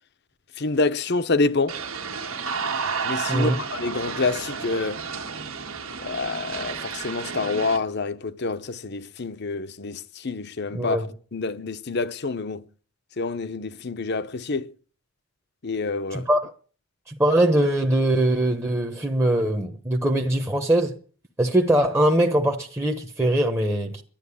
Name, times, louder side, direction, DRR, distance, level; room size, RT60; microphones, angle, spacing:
voice 1, 0.6-1.8 3.0-5.0 6.0-11.1 11.3-12.6 13.2-14.7 15.6-16.3, left 3 dB, 50° left, 0.8 m, -27 dB
sound 1, 1.7-7.8, right 5 dB, 75° right, 1.6 m, -31 dB
voice 2, 10.7-11.1 16.1-16.5 17.1-20.9 21.4-24.0, right 1 dB, 10° right, 1.0 m, -22 dB
12.0 x 10.5 x 8.5 m
head